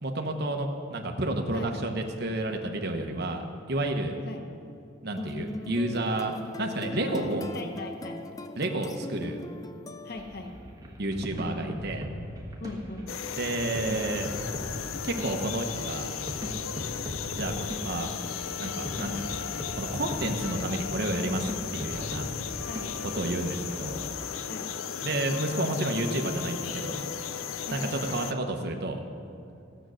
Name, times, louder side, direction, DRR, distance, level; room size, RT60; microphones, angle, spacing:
voice 1, 0.0-4.1 5.0-7.5 8.6-9.4 11.0-12.1 13.4-14.3 15.0-16.1 17.2-18.1 18.6-19.5 19.8-22.3 23.1-24.0 25.0-27.0 27.7-29.0, right 1 dB, 50° right, 3 dB, 1.0 m, -31 dB
sound 1, 5.2-10.6, left 2 dB, 15° left, 0.4 m, -41 dB
voice 2, 7.0-8.2 10.0-10.6 12.6-13.1 22.7-23.0 24.5-24.7 27.7-27.9, left 2 dB, 50° left, 4 dB, 1.0 m, -39 dB
sound 2, 10.2-23.9, equal, 15° right, 1.3 m, -39 dB
sound 3, 13.1-28.3, left 7 dB, 80° left, 0.5 m, -35 dB
14.5 x 7.9 x 6.4 m, 2.5 s
head